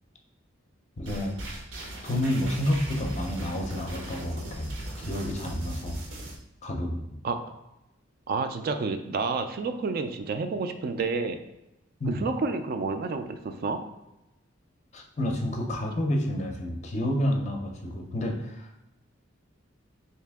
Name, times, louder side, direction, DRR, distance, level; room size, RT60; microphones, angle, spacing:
voice 1, 1.0-1.4 2.0-4.7 5.0-6.0 6.6-7.0 12.0-12.2 14.9-18.7, equal, 35° left, 2 dB, 0.5 m, -29 dB
sound 1, 1.1-6.4, right 1 dB, 80° right, 0.8 m, -37 dB
voice 2, 7.2-7.6 8.3-11.4 12.1-13.8, right 4 dB, 50° right, 7 dB, 0.3 m, -30 dB
3.2 x 2.8 x 3.4 m, 0.93 s
head